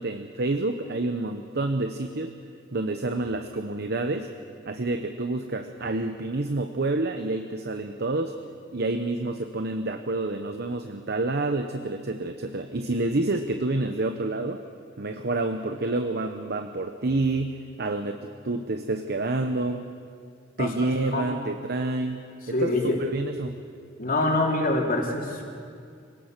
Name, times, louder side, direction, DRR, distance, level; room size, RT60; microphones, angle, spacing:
voice 1, 0.0-2.4 2.7-4.3 4.7-8.3 8.7-14.6 15.0-19.9 20.6-23.6, right 2 dB, 55° right, 7 dB, 0.9 m, -28 dB
voice 2, 22.5-23.0 24.0-25.4, left 2 dB, 50° left, 0 dB, 3.4 m, -25 dB
26.0 x 18.0 x 6.6 m, 2.3 s
head